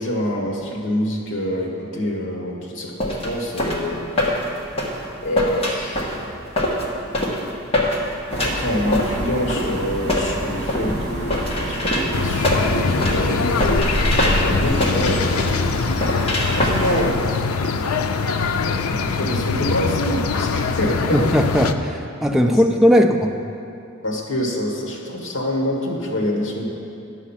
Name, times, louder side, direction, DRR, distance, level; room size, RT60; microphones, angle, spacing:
voice 1, 0.0-4.0 5.2-6.1 8.3-15.4 16.5-17.2 18.8-21.2 22.5-22.6 24.0-26.7, equal, 60° left, -1 dB, 1.6 m, -26 dB
sound 1, 3.0-17.2, left 1 dB, 25° left, 1.2 m, -24 dB
sound 2, 8.3-17.1, equal, 50° right, 1.3 m, -28 dB
sound 3, 12.1-21.7, left 4 dB, 90° left, 0.5 m, -23 dB
voice 2, 21.1-23.3, equal, ahead, 2 dB, 0.4 m, -17 dB
10.5 x 7.0 x 5.7 m, 2.6 s
head